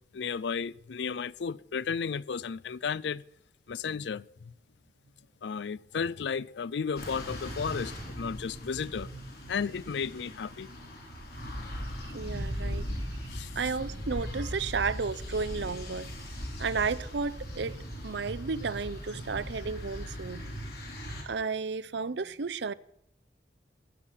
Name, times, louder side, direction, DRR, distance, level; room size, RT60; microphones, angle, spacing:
voice 1, 0.1-3.2 3.7-4.2 5.4-9.1 9.5-10.7 13.3-13.5, left 6 dB, 75° left, 0.4 m, -33 dB
sound 1, 7.0-21.2, equal, 55° left, 3.8 m, -39 dB
voice 2, 12.0-12.9 13.2-16.1 16.6-17.8 18.0-20.4 21.3-22.7, right 4 dB, 80° right, 0.6 m, -33 dB
15.5 x 6.6 x 10.0 m
head